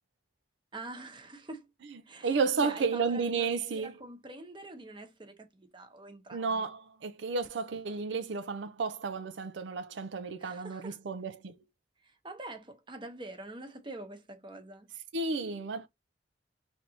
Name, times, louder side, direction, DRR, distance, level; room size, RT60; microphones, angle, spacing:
voice 1, 0.7-1.7 2.0-6.7 10.4-11.0 12.0-14.9, right 2 dB, 25° right, 0.9 m, -45 dB
voice 2, 1.9-3.9 6.3-11.6 15.1-15.9, right 4 dB, 80° right, 0.5 m, -32 dB
4.0 x 3.3 x 2.8 m
head